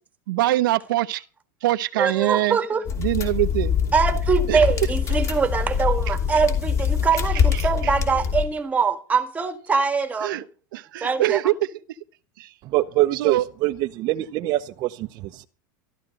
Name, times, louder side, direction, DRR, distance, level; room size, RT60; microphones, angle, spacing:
voice 1, 0.3-1.2 1.6-2.6 3.0-3.7 4.5-4.6 6.1-6.2 7.5-7.7 10.2-10.4 10.7-11.5 12.4-12.5 13.1-13.4, right 16 dB, 85° right, 0.9 m, -23 dB
voice 2, 2.0-2.8 3.9-10.3 11.0-11.4, right 5 dB, 15° right, 1.8 m, -23 dB
sound 1, 2.8-8.4, left 7 dB, 30° left, 2.9 m, -24 dB
voice 3, 12.6-15.5, right 16 dB, 40° right, 0.9 m, -24 dB
13.5 x 13.0 x 5.4 m
supercardioid pair, 150°, 11 cm